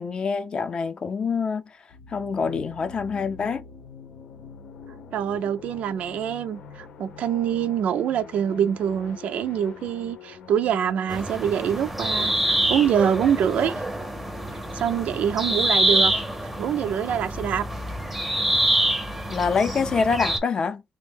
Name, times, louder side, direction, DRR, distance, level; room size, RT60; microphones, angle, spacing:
voice 1, 0.0-1.8 2.1-3.7 19.3-20.8, left 5 dB, 40° left, 0.5 m, -25 dB
sound 1, 1.9-13.4, left 6 dB, 90° left, 0.8 m, -45 dB
voice 2, 5.1-13.8 14.7-16.3 16.6-17.7, right 9 dB, 75° right, 0.4 m, -25 dB
sound 2, 11.1-20.4, right 1 dB, 5° right, 0.6 m, -26 dB
3.4 x 2.1 x 3.4 m
wide cardioid pair, 155°, 2 cm